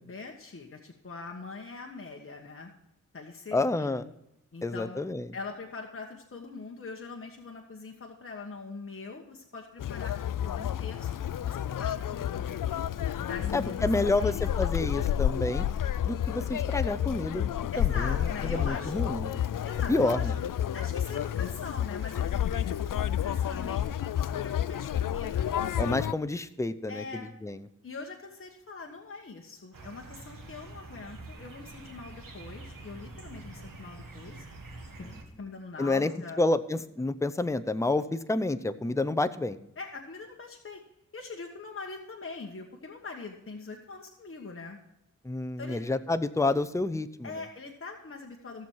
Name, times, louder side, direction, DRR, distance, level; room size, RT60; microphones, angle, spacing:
voice 1, 0.0-2.7 3.1-4.1 4.5-5.0 5.3-10.1 10.4-12.6 13.2-14.4 17.7-18.9 19.6-20.3 20.7-25.5 26.9-27.3 27.8-34.4 35.0-36.4 39.8-40.8 41.1-44.8 45.6-45.8 47.2-48.7, left 4 dB, 40° left, 1 dB, 1.3 m, -42 dB
voice 2, 3.5-4.0 4.6-5.3 13.5-15.7 16.0-17.5 17.8-18.1 18.5-19.4 19.9-20.3 25.8-27.6 35.8-36.1 36.4-39.6 45.2-47.3, left 2 dB, 10° left, 12 dB, 0.6 m, -29 dB
Conversation, 9.8-26.1, left 10 dB, 75° left, 0.5 m, -30 dB
sound 1, 29.7-35.2, right 2 dB, 90° right, 1.9 m, -46 dB
16.0 x 7.2 x 4.6 m, 0.82 s
wide cardioid pair, 75°, 32 cm